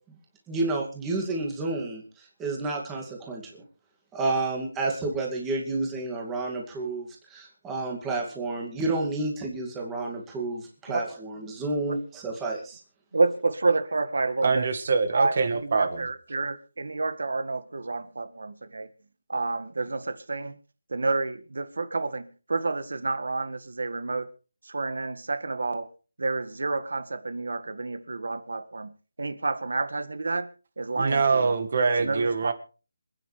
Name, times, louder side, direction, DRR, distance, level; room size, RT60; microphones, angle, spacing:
voice 1, 0.5-3.4 4.1-12.8, right 2 dB, 10° right, -1 dB, 2.4 m, -30 dB
voice 2, 13.1-14.7 15.1-18.9 19.3-20.6 20.9-24.3 24.6-25.9 26.2-31.5 32.0-32.5, right 3 dB, 75° right, 10 dB, 1.9 m, -29 dB
voice 3, 14.4-16.1 31.0-32.5, right 4 dB, 45° right, 8 dB, 1.8 m, -24 dB
27.0 x 9.6 x 3.4 m, 0.37 s
figure-of-eight pair, 170°, 0 cm